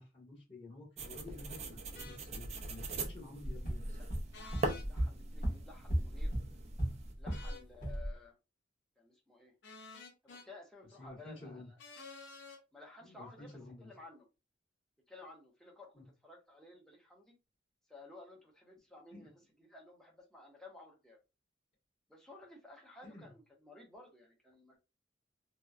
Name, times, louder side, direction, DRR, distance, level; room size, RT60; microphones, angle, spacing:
voice 1, 0.0-4.0 11.0-11.7 13.0-13.9 15.9-16.0 19.1-19.3 23.0-23.3, left 2 dB, 30° left, -4 dB, 1.5 m, -51 dB
sound 1, 1.0-7.1, right 2 dB, 35° right, 0.4 m, -42 dB
sound 2, 2.0-2.2 4.3-4.9 7.3-7.7 9.6-10.5 11.8-12.6, left 3 dB, 70° left, 0.6 m, -51 dB
sound 3, 3.4-7.5 7.8-8.1, equal, 45° left, 1.2 m, -36 dB
voice 2, 3.9-6.3 7.2-8.4 9.0-9.5 10.2-11.8 12.7-14.3 15.1-17.4 17.9-21.2 22.1-24.8, left 2 dB, 5° left, -2 dB, 0.8 m, -56 dB
2.9 x 2.2 x 2.4 m, 0.27 s
head